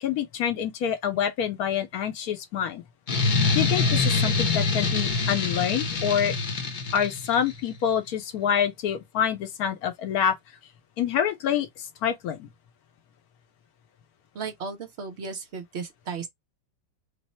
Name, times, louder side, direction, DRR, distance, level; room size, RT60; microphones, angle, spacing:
voice 1, 0.0-2.8 3.5-6.4 6.9-10.4 11.0-12.5, left 9 dB, 70° left, 1.0 m, -27 dB
sound 1, 3.1-7.5, left 4 dB, 40° left, 0.7 m, -25 dB
voice 2, 14.3-16.3, right 5 dB, 60° right, 0.7 m, -35 dB
3.1 x 2.0 x 4.1 m
omnidirectional pair, 1.8 m